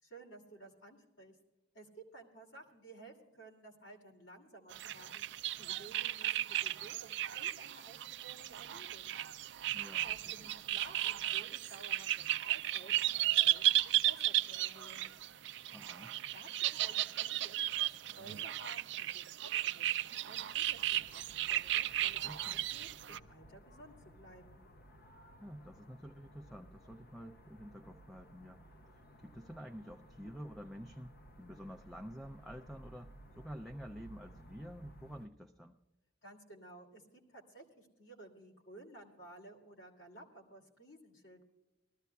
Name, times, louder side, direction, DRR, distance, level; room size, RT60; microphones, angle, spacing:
voice 1, 0.0-1.4 1.7-9.1 10.0-15.1 16.3-24.6 36.2-41.4, right 2 dB, 75° left, 1 dB, 2.8 m, -55 dB
sound 1, 4.7-23.2, right 13 dB, 65° right, 0.4 m, -35 dB
voice 2, 9.7-10.3 15.7-16.1 22.2-22.6 25.4-28.6 28.9-35.8, equal, ahead, 5 dB, 0.4 m, -49 dB
sound 2, 20.9-35.3, right 1 dB, 55° left, 0.7 m, -58 dB
21.5 x 13.5 x 2.3 m, 1.0 s
head